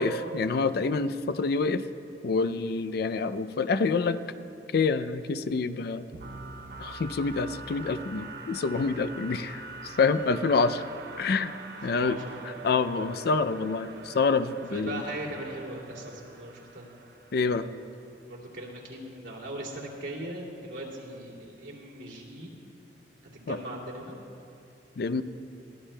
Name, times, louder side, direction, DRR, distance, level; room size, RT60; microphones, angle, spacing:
voice 1, 0.0-1.8 2.2-4.2 4.7-6.1 6.8-10.8 11.2-11.5 11.8-12.2 12.6-15.0 17.3-17.7 23.5-23.6 25.0-25.2, left 4 dB, 60° left, 12 dB, 0.4 m, -27 dB
sound 1, 6.1-17.9, right 4 dB, 60° right, 0.6 m, -44 dB
voice 2, 11.8-12.4 14.7-16.9 18.3-22.5 23.3-24.2, right 1 dB, 85° right, -3 dB, 2.5 m, -39 dB
21.0 x 14.5 x 2.2 m, 2.6 s
head